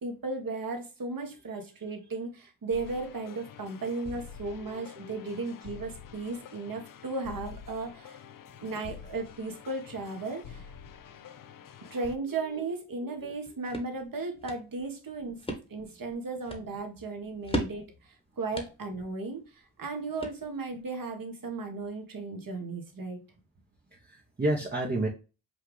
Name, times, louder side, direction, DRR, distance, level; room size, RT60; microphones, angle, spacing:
voice 1, 0.0-8.2 8.6-10.7 11.9-15.4 15.7-23.2, right 3 dB, 45° right, 4 dB, 1.5 m, -35 dB
sound 1, 2.7-12.2, left 8 dB, 45° left, 0.6 m, -47 dB
voice 2, 4.6-5.4 12.4-12.6 13.0-13.3 23.9-25.1, right 1 dB, 20° right, 0 dB, 1.0 m, -32 dB
sound 2, 13.2-20.8, equal, 10° left, 1.3 m, -40 dB
5.7 x 2.4 x 3.3 m, 0.32 s
supercardioid pair, 50°, 47 cm